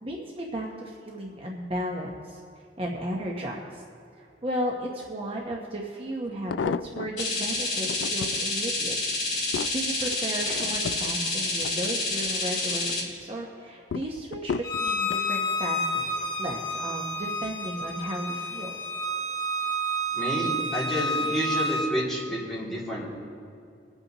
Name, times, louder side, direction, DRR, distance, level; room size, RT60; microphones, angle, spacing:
voice 1, 0.0-3.8 4.2-9.0 9.3-14.5 14.8-18.8, right 1 dB, 30° right, -1 dB, 0.9 m, -34 dB
sound 1, 5.5-5.6 6.2-7.3 7.8-8.4 9.0-12.4 12.8-13.3 13.9-15.3 16.0-16.4 16.7-16.8, left 6 dB, 85° left, 0.3 m, -35 dB
sound 2, 7.2-13.0, left 2 dB, 40° left, 3.1 m, -28 dB
Bowed string instrument, 14.6-21.9, equal, 20° left, 1.3 m, -29 dB
voice 2, 20.1-23.0, equal, ahead, -8 dB, 2.5 m, -29 dB
22.5 x 8.1 x 3.0 m, 2.5 s
head